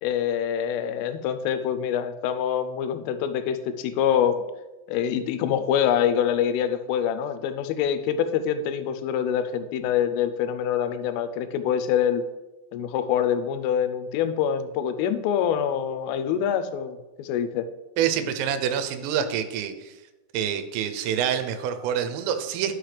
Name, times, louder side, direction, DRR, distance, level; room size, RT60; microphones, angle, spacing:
voice 1, 0.0-4.4 4.9-12.2 12.7-17.7, left 9 dB, 85° left, 10 dB, 3.2 m, -25 dB
voice 2, 18.0-19.9 20.3-22.8, right 9 dB, 85° right, 9 dB, 3.2 m, -26 dB
11.5 x 6.2 x 3.3 m, 1.1 s
omnidirectional pair, 5.7 m